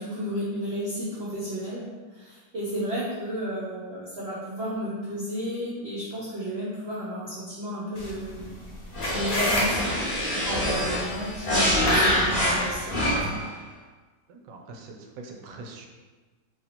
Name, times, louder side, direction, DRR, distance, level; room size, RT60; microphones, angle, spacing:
voice 1, 0.0-1.9 2.1-8.6 9.1-9.9 10.4-13.1, equal, 55° right, -8 dB, 0.7 m, -32 dB
sound 1, 8.0-13.1, left 1 dB, 70° left, 0.3 m, -32 dB
sound 2, 8.9-13.5, equal, 25° left, 0.8 m, -25 dB
voice 2, 14.3-15.9, right 3 dB, 75° right, 2 dB, 1.1 m, -43 dB
3.0 x 2.7 x 4.1 m, 1.3 s
omnidirectional pair, 2.0 m